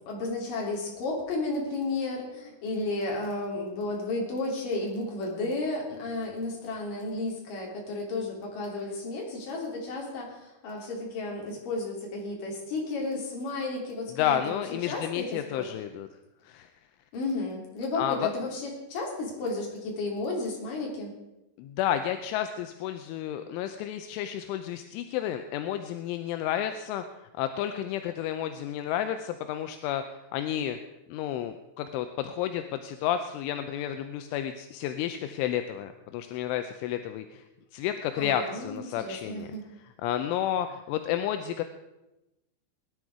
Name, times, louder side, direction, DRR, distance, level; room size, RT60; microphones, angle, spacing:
voice 1, 0.0-15.7 17.1-21.1 38.2-39.6, left 2 dB, 45° left, -1 dB, 4.5 m, -33 dB
voice 2, 14.2-16.1 16.4-16.7 18.0-18.3 21.6-30.8 31.1-37.4 37.7-39.5 40.0-41.6, left 10 dB, 80° left, 8 dB, 2.9 m, -31 dB
20.0 x 11.0 x 4.9 m, 0.96 s
omnidirectional pair, 5.9 m